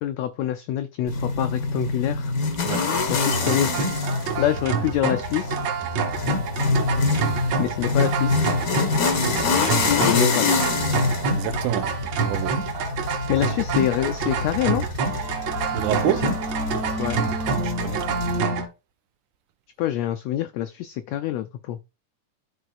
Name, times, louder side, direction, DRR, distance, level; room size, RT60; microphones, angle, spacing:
voice 1, 0.0-2.3 3.1-3.7 4.4-5.6 7.6-8.4 10.0-10.5 13.3-14.8 17.0-17.2 19.8-21.8, left 12 dB, 85° left, 1.5 m, -25 dB
sound 1, 1.1-18.4, left 4 dB, 65° left, 0.8 m, -26 dB
sound 2, 3.2-18.7, right 5 dB, 65° right, 2.4 m, -27 dB
voice 2, 11.3-11.9 12.2-12.6 15.7-16.3 17.6-18.2, right 12 dB, 85° right, 2.1 m, -27 dB
13.0 x 4.3 x 2.4 m
omnidirectional pair, 3.6 m